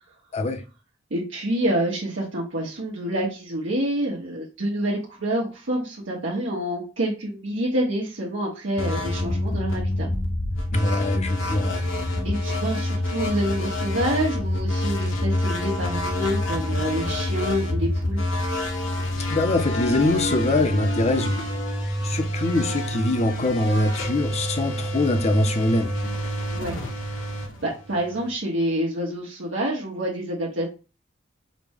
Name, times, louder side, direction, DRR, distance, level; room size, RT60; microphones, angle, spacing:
voice 1, 1.1-10.1 12.2-18.2 26.5-30.7, right 1 dB, 85° right, 1.0 m, -27 dB
sound 1, 8.8-28.3, left 1 dB, 85° left, 1.0 m, -27 dB
voice 2, 10.7-11.8 19.3-21.4 22.0-25.9, left 2 dB, 35° left, 0.6 m, -23 dB
5.0 x 2.1 x 3.5 m
head